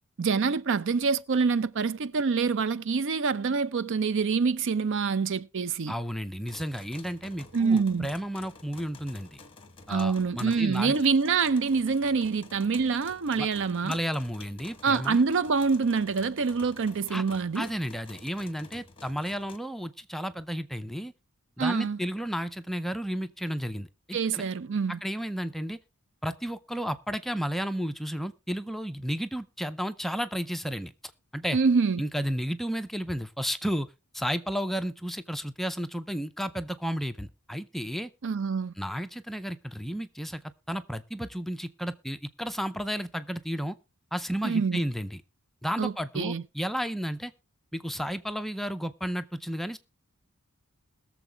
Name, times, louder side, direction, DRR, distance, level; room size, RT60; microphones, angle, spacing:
voice 1, 0.2-5.9 7.5-8.1 9.9-14.0 14.8-17.7 21.6-22.0 24.1-25.0 31.5-32.0 38.2-38.7 44.4-44.8 45.8-46.4, right 5 dB, 55° right, 0.5 m, -26 dB
voice 2, 5.9-9.4 9.9-10.9 13.4-13.5 13.8-15.2 17.1-17.2 17.5-21.1 21.6-24.4 25.0-25.8 26.2-30.9 31.3-31.6 32.0-33.9 34.1-38.1 38.8-40.4 40.7-43.8 44.1-45.2 45.6-47.3 47.7-49.8, equal, ahead, 0.5 m, -32 dB
sound 1, 6.4-19.6, left 3 dB, 25° left, 1.3 m, -50 dB
21.0 x 7.1 x 3.4 m
head